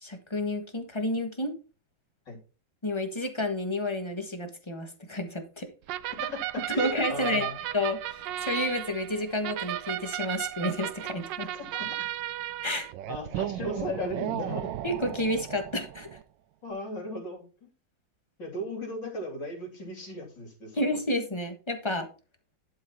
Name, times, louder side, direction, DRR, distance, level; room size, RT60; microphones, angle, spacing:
voice 1, 0.0-1.5 2.8-5.7 6.7-7.4 7.7-11.5 12.6-12.9 14.8-16.1 20.7-22.1, left 1 dB, 15° left, 1.2 m, -30 dB
sound 1, 5.9-16.2, right 13 dB, 75° right, 1.2 m, -35 dB
voice 2, 6.7-7.6 11.5-12.1 13.1-14.7 16.6-17.7 18.4-20.9, left 1 dB, 65° left, 3.7 m, -36 dB
11.5 x 4.8 x 4.5 m
omnidirectional pair, 2.1 m